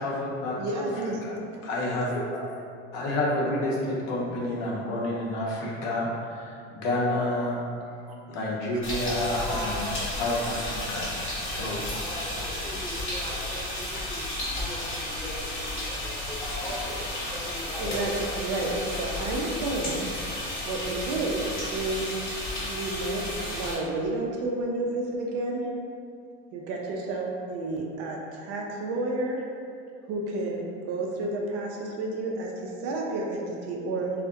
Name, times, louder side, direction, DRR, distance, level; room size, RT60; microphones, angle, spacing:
voice 1, 0.0-0.9 1.2-1.4 1.6-2.2 2.9-7.6 8.3-9.8 10.2-11.1 11.5-11.8 17.9-18.0, left 1 dB, 65° left, -4 dB, 0.7 m, -29 dB
voice 2, 0.6-1.3 13.3-13.4 17.8-18.7 19.0-20.1 20.6-22.1 22.6-25.7 26.5-29.4 30.0-34.1, right 2 dB, 50° right, -1 dB, 0.4 m, -31 dB
sound 1, 8.8-23.7, left 1 dB, 40° left, 1.0 m, -33 dB
voice 3, 9.3-10.4 11.9-19.0, left 1 dB, 15° left, -8 dB, 0.7 m, -40 dB
2.5 x 2.1 x 2.3 m, 2.4 s
supercardioid pair, 110°, 31 cm